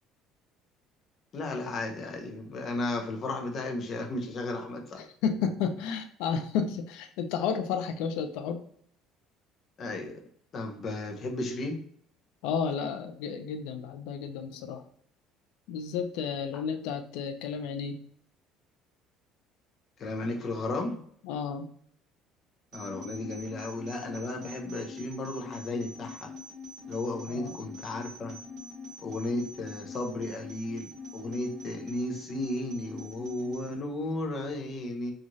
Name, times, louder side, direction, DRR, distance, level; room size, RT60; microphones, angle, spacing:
voice 1, 1.3-5.0 9.8-10.1 10.5-11.8 20.0-21.0 22.7-26.3 26.9-28.4 29.0-35.1, left 2 dB, 30° left, 3 dB, 0.5 m, -34 dB
voice 2, 5.0-8.6 12.4-14.8 15.7-18.0 21.3-21.7 27.3-27.5, left 6 dB, 90° left, 6 dB, 0.3 m, -32 dB
sound 1, 22.7-33.7, left 3 dB, 50° right, 1.3 m, -44 dB
3.0 x 2.4 x 2.6 m, 0.62 s
cardioid pair, 170°, 0 cm